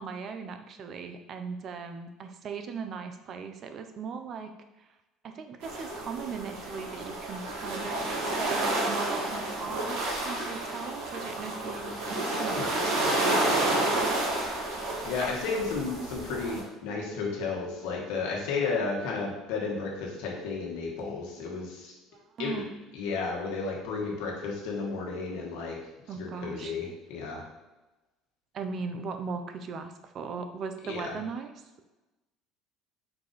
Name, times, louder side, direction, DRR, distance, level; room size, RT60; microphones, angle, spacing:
voice 1, 0.0-4.5 4.8-4.9 5.2-11.9 12.3-14.2 22.1-22.7 26.1-26.8 28.5-31.6, right 5 dB, 50° right, 7 dB, 0.5 m, -38 dB
sound 1, 5.6-16.6, right 2 dB, 80° right, 1.3 m, -30 dB
voice 2, 15.0-21.9 22.4-22.6 22.9-25.8 26.1-27.4 30.8-31.1, left 4 dB, 80° left, -2 dB, 1.2 m, -33 dB
4.7 x 2.4 x 3.9 m, 1.1 s
supercardioid pair, 95°, 0 cm